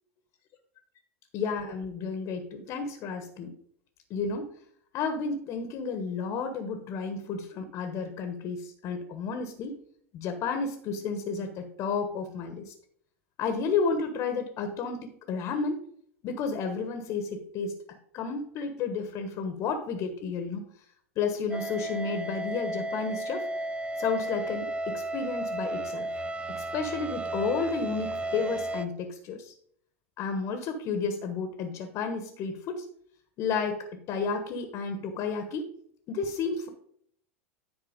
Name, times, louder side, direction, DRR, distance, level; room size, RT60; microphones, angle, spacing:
voice 1, 1.3-3.5 4.1-4.4 4.9-9.7 10.1-12.7 13.4-15.8 16.2-17.7 18.1-20.6 21.2-23.5 24.0-26.1 26.5-29.5 30.2-32.8 33.4-33.8 34.1-35.7 36.1-36.7, left 5 dB, 45° left, 6 dB, 1.3 m, -32 dB
sound 1, 21.5-28.9, right 1 dB, 15° right, 0.5 m, -33 dB
10.0 x 4.5 x 5.2 m, 0.65 s
hypercardioid pair, 90°, 7 cm